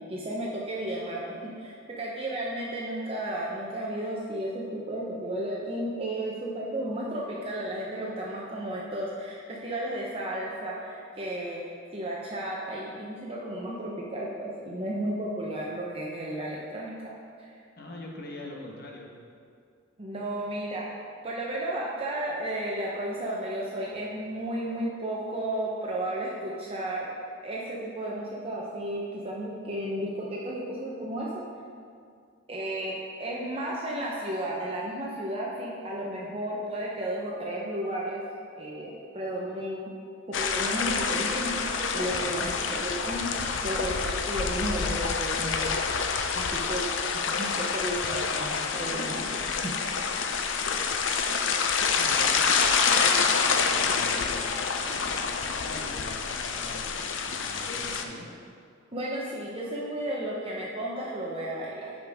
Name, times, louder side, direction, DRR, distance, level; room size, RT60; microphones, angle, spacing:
voice 1, 0.1-11.6 11.9-16.9 17.4-17.5 20.0-20.9 21.2-27.1 27.4-31.3 32.5-38.2 38.6-39.9 40.3-45.7 46.3-46.9 47.3-49.7 58.9-61.9, right 1 dB, 30° right, -4 dB, 0.9 m, -33 dB
voice 2, 17.8-19.1 42.0-42.3 52.0-56.9 57.2-58.3, left 1 dB, 55° left, -2 dB, 1.3 m, -43 dB
sound 1, 40.3-58.0, left 5 dB, 70° left, 0.6 m, -27 dB
13.0 x 5.2 x 3.6 m, 2.3 s
head